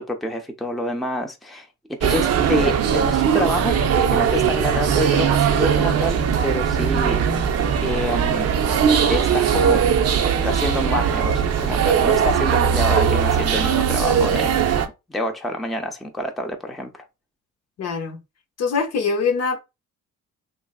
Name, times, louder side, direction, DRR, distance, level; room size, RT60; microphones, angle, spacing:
voice 1, 0.0-7.2 7.8-8.6 9.1-9.8 10.4-14.7 15.1-17.0, equal, ahead, 0.5 m, -27 dB
sound 1, 2.0-14.9, right 7 dB, 55° right, 0.6 m, -20 dB
voice 2, 17.8-18.2 18.6-19.6, left 5 dB, 55° left, 0.7 m, -23 dB
3.1 x 2.6 x 2.3 m
cardioid pair, 90°, 30 cm